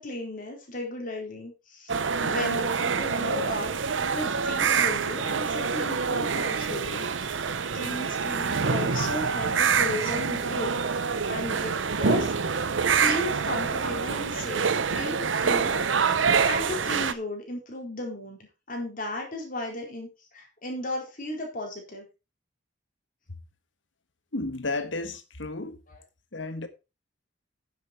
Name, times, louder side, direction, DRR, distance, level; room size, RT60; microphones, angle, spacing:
voice 1, 0.0-3.7 4.0-7.5 7.7-11.0 11.3-12.6 13.0-16.1 16.4-18.4 18.7-22.0, left 2 dB, 50° left, 4.2 m, -35 dB
sound 1, 1.9-17.1, right 5 dB, 85° right, 0.8 m, -26 dB
voice 2, 24.3-25.8 26.3-26.7, left 2 dB, 80° left, 1.5 m, -32 dB
10.0 x 7.7 x 4.5 m
head